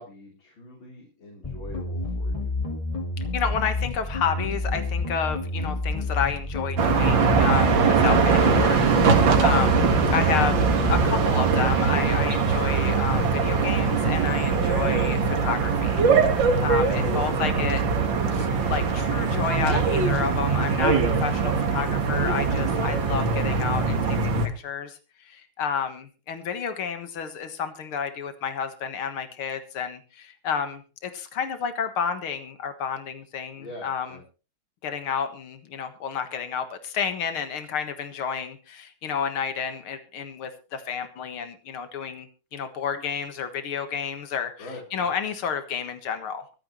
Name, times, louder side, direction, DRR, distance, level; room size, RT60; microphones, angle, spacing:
voice 1, 0.0-2.5 9.9-10.2 16.9-17.7 33.5-34.2 44.6-45.1, left 2 dB, 65° left, -2 dB, 4.5 m, -41 dB
sound 1, 1.4-11.0, left 2 dB, 20° left, 1.5 m, -29 dB
voice 2, 3.3-16.0 16.6-17.8 18.3-34.2 34.8-42.3 42.5-46.5, left 7 dB, 85° left, 8 dB, 2.4 m, -30 dB
sound 2, 6.8-24.5, right 5 dB, 65° right, 2.5 m, -22 dB
23.5 x 9.4 x 3.1 m, 0.34 s
omnidirectional pair, 2.3 m